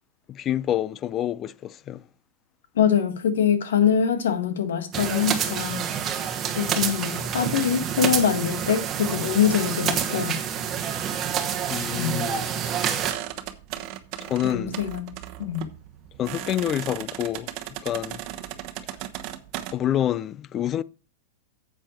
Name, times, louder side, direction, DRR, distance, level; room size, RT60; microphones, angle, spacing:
voice 1, 0.3-2.0 11.7-12.5 14.2-14.8 16.2-17.5 17.8-18.2 19.7-20.8, left 11 dB, 25° left, 0.4 m, -27 dB
voice 2, 2.7-5.9 6.5-10.4 11.9-12.3 14.4-15.1 15.4-15.7, left 8 dB, 90° left, 1.7 m, -24 dB
sound 1, 4.9-13.1, right 8 dB, 25° right, 1.2 m, -28 dB
sound 2, 13.0-19.7, right 13 dB, 40° right, 1.1 m, -36 dB
10.0 x 7.5 x 4.5 m
supercardioid pair, 150°, 0 cm